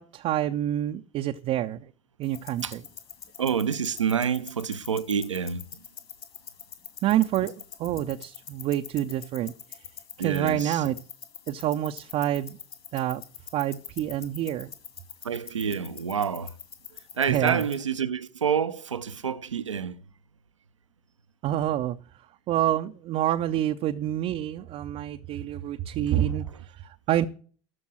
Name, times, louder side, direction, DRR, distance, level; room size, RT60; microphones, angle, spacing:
voice 1, 0.0-1.9 2.2-2.8 7.0-9.5 10.2-11.0 11.5-12.6 12.9-13.2 13.5-14.7 17.3-17.6 21.4-22.0 22.5-27.3, right 12 dB, 40° right, 0.6 m, -27 dB
sound 1, 2.2-17.8, left 8 dB, 35° left, 2.3 m, -45 dB
voice 2, 3.4-5.8 10.2-10.8 15.2-16.6 16.9-20.0 26.5-26.6, right 7 dB, 80° right, 0.6 m, -28 dB
14.0 x 5.3 x 7.6 m
figure-of-eight pair, 75°, 16 cm